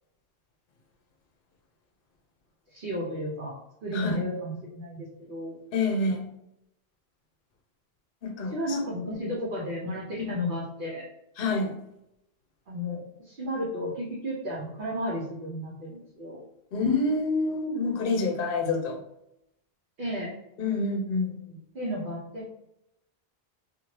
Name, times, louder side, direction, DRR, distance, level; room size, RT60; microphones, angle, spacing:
voice 1, 2.7-3.5 3.8-5.6 8.5-11.0 12.7-16.4 20.0-20.4 21.7-22.5, equal, 60° right, -5 dB, 0.9 m, -33 dB
voice 2, 3.9-4.3 5.7-6.3 8.2-8.8 9.1-9.3 10.2-10.3 11.4-11.7 16.7-19.0 20.6-21.6, left 3 dB, 65° left, 1 dB, 0.8 m, -27 dB
2.6 x 2.5 x 3.1 m, 0.84 s
omnidirectional pair, 1.0 m